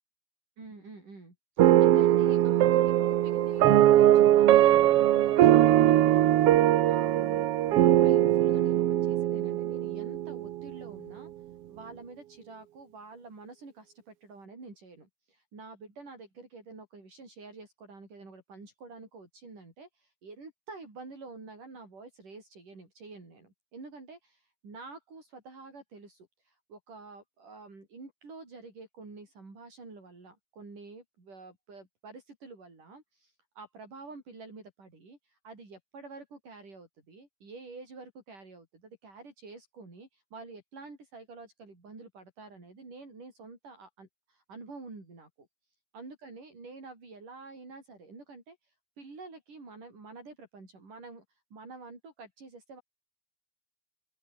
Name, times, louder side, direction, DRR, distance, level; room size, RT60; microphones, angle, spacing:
voice 1, 0.6-4.8 5.1-11.3 11.7-45.5 45.9-52.8, right 3 dB, 65° right, 9.7 m, -48 dB
sound 1, 1.6-10.8, right 13 dB, 85° right, 1.3 m, -21 dB
open air
omnidirectional pair, 4.0 m